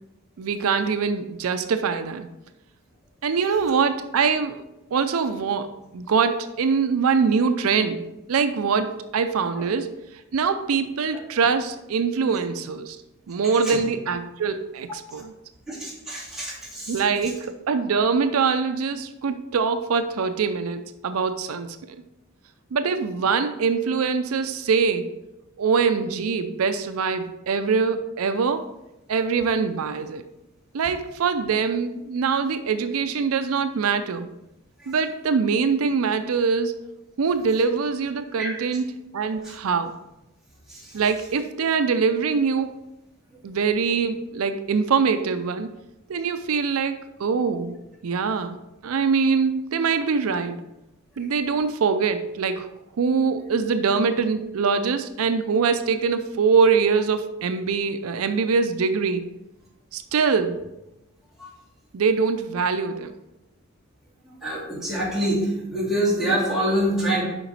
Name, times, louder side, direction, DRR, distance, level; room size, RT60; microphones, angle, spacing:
voice 1, 0.4-2.3 3.2-4.6 4.9-9.9 10.3-13.0 13.3-15.3 16.9-22.0 22.7-25.2 25.6-28.7 29.1-30.2 30.7-34.3 34.9-36.8 37.2-38.9 39.1-39.9 40.9-42.7 43.4-45.7 46.1-47.8 48.0-48.6 48.8-50.6 51.2-52.7 53.0-59.3 59.9-60.6 61.9-63.1, right 5 dB, 85° right, 9 dB, 0.5 m, -23 dB
voice 2, 15.7-17.0 38.4-38.5 39.4-39.5 40.7-41.0 61.4-61.5 64.4-67.2, right 1 dB, ahead, -8 dB, 2.4 m, -26 dB
7.0 x 5.1 x 4.0 m, 0.94 s
head